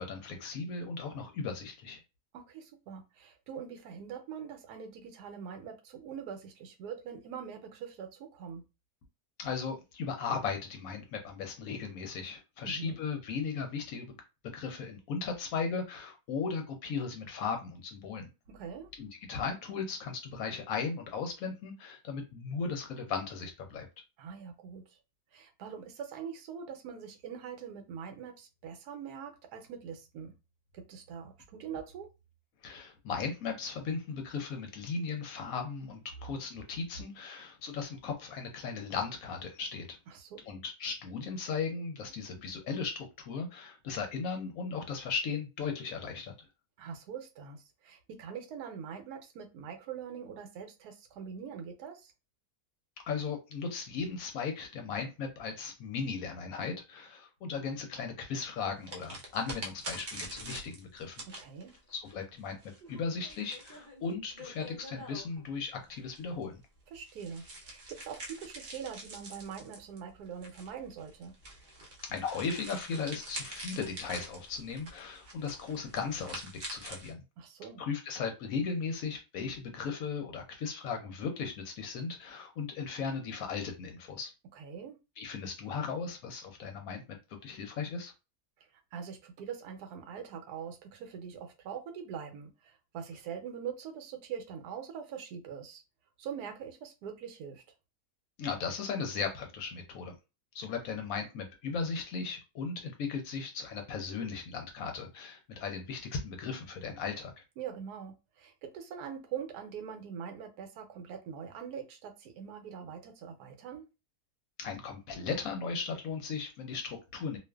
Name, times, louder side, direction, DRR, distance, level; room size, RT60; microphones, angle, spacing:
voice 1, 0.0-2.0 9.4-14.2 14.5-18.3 19.0-23.9 32.6-40.0 40.5-46.5 53.1-61.2 61.9-62.6 62.9-66.6 72.1-77.2 77.8-84.3 85.2-87.2 87.4-88.1 98.4-100.1 100.5-107.3 114.6-117.4, left 5 dB, 70° left, 0.9 m, -37 dB
voice 2, 2.3-8.6 12.6-13.0 18.5-18.9 24.2-25.0 25.3-30.3 30.7-32.1 36.9-37.0 40.1-40.4 46.8-52.1 61.3-61.7 66.9-71.3 77.4-77.8 84.5-85.0 88.6-95.8 96.2-97.6 107.6-113.8, right 7 dB, 80° right, 1.1 m, -43 dB
sound 1, 58.8-65.5 66.1-77.1, right 1 dB, 50° right, 0.6 m, -46 dB
2.4 x 2.4 x 2.2 m
omnidirectional pair, 1.7 m